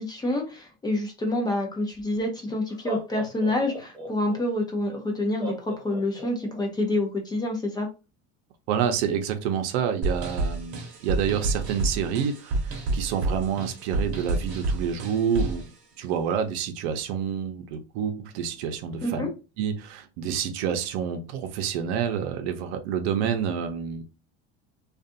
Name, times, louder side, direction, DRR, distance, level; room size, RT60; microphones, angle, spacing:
voice 1, 0.0-7.9 19.0-19.3, left 1 dB, 15° left, 0.5 m, -27 dB
Laughter, 2.0-2.1 2.7-4.4 5.4-6.6, right 1 dB, 10° right, 0.8 m, -36 dB
voice 2, 8.7-15.6 16.0-19.3 19.6-24.1, right 8 dB, 85° right, 0.6 m, -28 dB
sound 1, 10.0-15.7, right 2 dB, 45° right, 0.8 m, -29 dB
2.5 x 2.3 x 2.5 m
cardioid pair, 150°, 32 cm